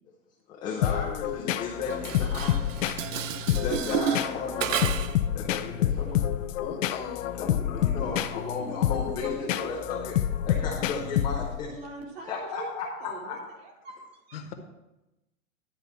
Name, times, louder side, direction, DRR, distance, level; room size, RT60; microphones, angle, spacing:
voice 1, 0.5-2.6 3.5-5.0 5.3-6.5 7.4-11.7 12.2-13.4, left 4 dB, 10° left, -4 dB, 0.4 m, -35 dB
sound 1, 0.8-11.7, left 11 dB, 80° left, 0.7 m, -28 dB
Dishes pots and pans, 1.9-5.3, right 9 dB, 75° right, 0.7 m, -31 dB
voice 2, 6.6-9.7 14.3-14.5, left 7 dB, 50° left, 5 dB, 1.2 m, -40 dB
voice 3, 9.4-9.7 11.7-14.4, right 3 dB, 50° right, 0 dB, 2.2 m, -43 dB
11.5 x 3.9 x 7.0 m, 0.97 s
supercardioid pair, 165°, 38 cm